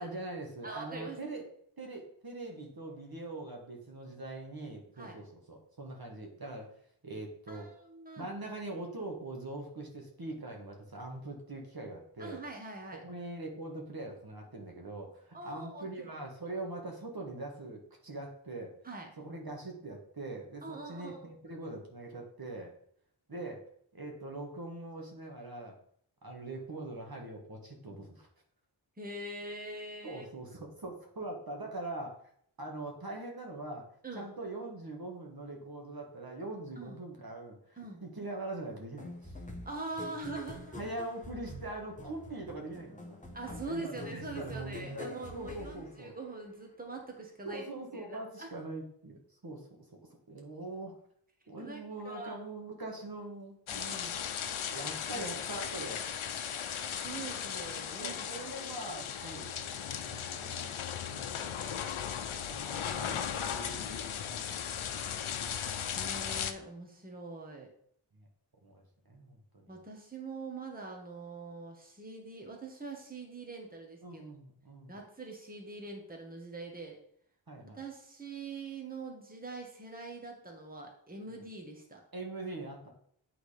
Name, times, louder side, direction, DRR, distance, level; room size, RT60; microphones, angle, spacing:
voice 1, 0.0-1.4 1.8-6.7 7.0-7.7 8.2-12.4 13.0-18.7 19.2-22.7 23.3-23.6 23.9-25.7 26.2-28.3 30.0-32.2 32.6-33.9 34.1-39.4 40.8-46.1 47.4-49.7 50.3-51.0 51.5-56.0 58.0-59.7 60.0-60.8 61.1-61.7 62.5-64.6 64.9-65.3 68.1-68.3 68.6-68.8 69.1-69.8 74.0-74.9 77.5-77.8 81.3-81.4 82.1-82.9, right 2 dB, 50° right, 1 dB, 1.5 m, -43 dB
voice 2, 0.6-1.2 5.0-5.2 7.5-8.3 12.2-13.0 15.3-16.1 18.8-19.1 20.6-21.3 29.0-30.5 34.0-34.3 36.8-37.0 37.8-38.0 39.6-40.8 43.3-47.6 47.9-48.5 51.6-52.4 55.1-55.3 57.0-58.2 59.2-59.3 65.9-67.7 69.7-74.2 74.9-77.0 77.6-82.0, right 3 dB, 20° right, 0 dB, 1.4 m, -43 dB
sound 1, 39.0-46.6, left 2 dB, 15° left, 1.2 m, -46 dB
sound 2, 53.7-66.5, left 8 dB, 85° left, 0.7 m, -37 dB
8.7 x 3.9 x 5.0 m, 0.66 s
wide cardioid pair, 90°, 47 cm